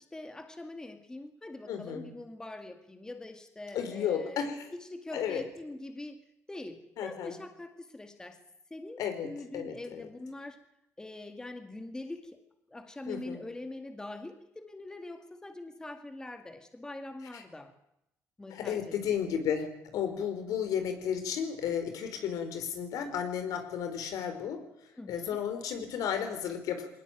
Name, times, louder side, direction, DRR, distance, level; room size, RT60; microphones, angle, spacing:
voice 1, 0.0-4.4 4.8-6.2 6.5-8.4 8.7-10.6 11.0-12.4 12.7-17.7 18.4-19.2 25.0-25.4, left 2 dB, 10° left, 7 dB, 2.0 m, -43 dB
voice 2, 1.7-2.1 3.7-4.7 5.1-5.4 7.0-7.4 9.0-10.1 13.1-13.4 17.3-17.4 18.5-24.6 25.1-26.9, left 8 dB, 75° left, 8 dB, 4.7 m, -33 dB
22.0 x 18.5 x 9.3 m, 0.81 s
cardioid pair, 135°, 6 cm